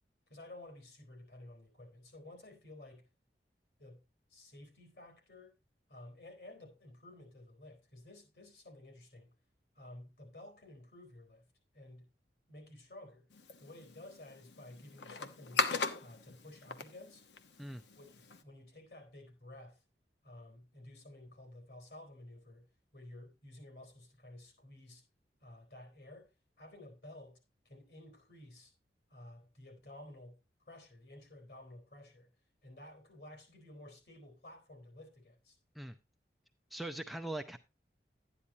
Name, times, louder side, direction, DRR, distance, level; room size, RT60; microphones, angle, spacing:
voice 1, 0.3-3.1 3.8-4.0 4.3-5.6 5.9-9.3 9.7-11.5 11.7-12.1 12.5-13.3 13.6-15.7 16.0-17.2 18.0-19.8 20.2-25.0 25.4-28.7 29.1-30.4 30.7-32.3 32.6-35.6, left 1 dB, 65° left, 3.8 m, -53 dB
sound 1, 13.3-18.4, left 4 dB, 80° left, 1.1 m, -39 dB
voice 2, 36.7-37.6, right 1 dB, ahead, 0.5 m, -41 dB
12.0 x 9.9 x 2.7 m
head